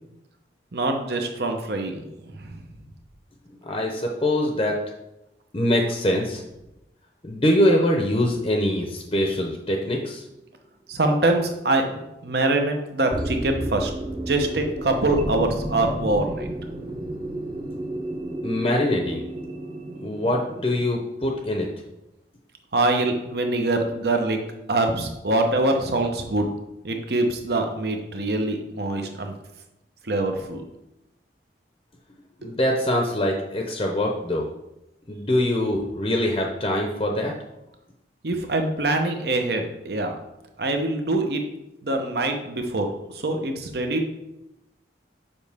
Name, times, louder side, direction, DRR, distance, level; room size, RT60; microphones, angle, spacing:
voice 1, 0.7-2.1 2.4-2.6 10.9-13.9 14.3-16.5 22.7-24.4 24.7-26.5 26.8-29.3 30.0-30.6 32.4-32.5 38.2-40.1 40.6-41.4 41.8-42.9 43.1-44.1, right 2 dB, 60° right, 4 dB, 0.9 m, -24 dB
voice 2, 3.6-4.8 5.5-6.4 7.2-10.2 18.4-19.2 20.0-21.7 32.4-34.5 35.1-37.3, left 1 dB, 30° left, 1 dB, 0.7 m, -23 dB
sound 1, 9.6-10.0 10.5-10.6 13.1-20.9, right 1 dB, 25° right, 0.7 m, -32 dB
7.1 x 5.3 x 3.5 m, 0.91 s
head